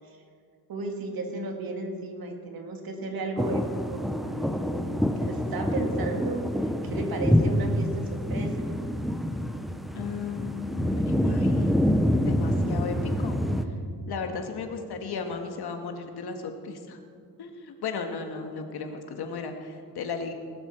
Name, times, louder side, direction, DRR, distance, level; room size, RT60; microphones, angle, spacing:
voice 1, 0.7-3.6 3.9-6.4 6.8-8.5, right 2 dB, 60° right, 3 dB, 2.2 m, -34 dB
sound 1, 3.4-13.6, equal, ahead, 0.6 m, -26 dB
voice 2, 9.9-11.8 12.3-13.4 14.1-17.0 17.4-20.3, left 5 dB, 75° left, 5 dB, 1.7 m, -35 dB
19.5 x 12.5 x 4.4 m, 2.2 s
wide cardioid pair, 160°, 39 cm